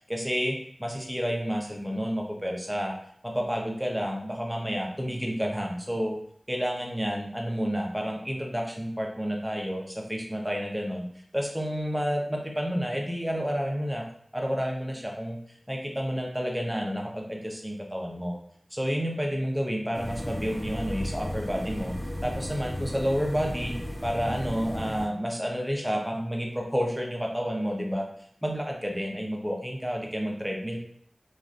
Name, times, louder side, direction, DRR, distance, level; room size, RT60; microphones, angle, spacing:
voice 1, 0.1-2.9 3.2-6.2 6.5-11.1 11.3-14.1 14.3-15.4 15.7-18.4 18.7-21.9 22.2-23.7 24.0-28.1 28.4-30.8, equal, 10° right, 0 dB, 0.6 m, -30 dB
sound 1, 19.9-25.1, equal, 70° left, 1.1 m, -34 dB
3.1 x 2.4 x 2.4 m, 0.64 s
wide cardioid pair, 55°, 0 cm